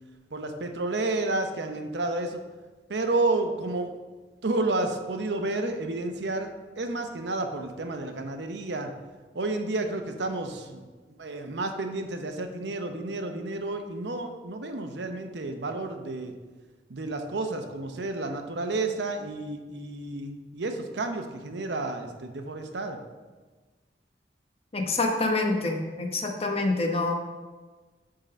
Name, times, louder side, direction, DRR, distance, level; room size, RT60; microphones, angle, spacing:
voice 1, 0.3-2.4 2.9-3.9 4.4-8.9 9.3-10.9 11.2-16.3 16.9-23.0, right 2 dB, 85° right, 6 dB, 0.8 m, -31 dB
voice 2, 24.7-27.1, left 2 dB, 35° left, 3 dB, 1.0 m, -26 dB
9.0 x 3.8 x 5.6 m, 1.3 s
head